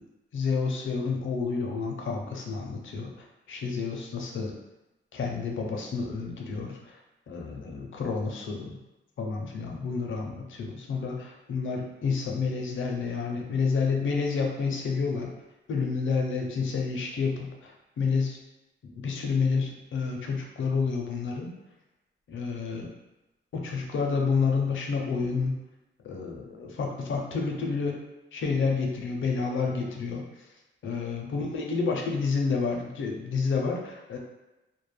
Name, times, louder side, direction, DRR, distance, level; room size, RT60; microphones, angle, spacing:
voice 1, 0.3-4.6 5.1-7.0 7.3-8.8 9.2-15.3 15.7-18.4 18.8-21.5 22.3-22.9 23.5-25.6 26.0-28.0 28.3-30.2 30.8-34.2, left 5 dB, 70° left, 1 dB, 0.5 m, -29 dB
2.2 x 2.1 x 3.1 m, 1.0 s
wide cardioid pair, 110°, 20 cm